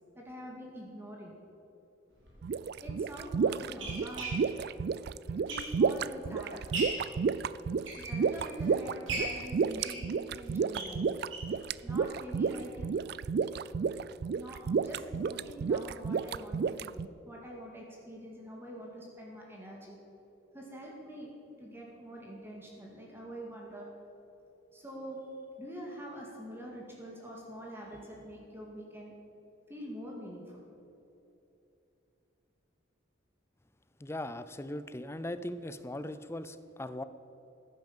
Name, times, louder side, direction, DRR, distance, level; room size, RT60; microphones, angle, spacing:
voice 1, 0.1-1.4 2.8-4.7 5.5-6.6 7.0-7.5 7.9-11.2 11.5-13.1 14.3-20.0 20.5-21.3 21.6-23.9 24.7-29.2 29.7-30.6, equal, 10° right, -2 dB, 2.1 m, -45 dB
sound 1, 2.2-2.3 3.1-6.1 6.5-7.1 7.6-8.6 9.1-11.6 12.0-12.1 12.3-12.4 12.8-12.9, right 2 dB, 80° right, 4.0 m, -39 dB
sound 2, 2.4-17.1, right 5 dB, 55° right, 0.3 m, -31 dB
voice 2, 34.0-37.0, left 1 dB, 15° left, 12 dB, 0.5 m, -39 dB
15.0 x 9.5 x 7.4 m, 2.9 s
head